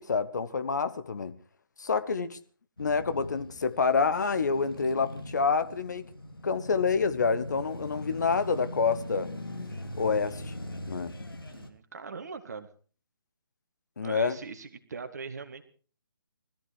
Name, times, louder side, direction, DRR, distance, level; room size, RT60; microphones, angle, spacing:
voice 1, 0.0-1.4 1.8-2.4 2.8-6.1 6.4-9.3 9.9-11.1 14.0-14.4, left 5 dB, 50° left, 1.1 m, -28 dB
Male speech man speaking / Motorcycle / Idling, 2.8-11.7, left 1 dB, 70° left, 2.8 m, -41 dB
voice 2, 11.4-12.7 14.0-15.6, right 4 dB, 45° right, 2.0 m, -41 dB
20.0 x 14.0 x 4.8 m
figure-of-eight pair, 140°, 12 cm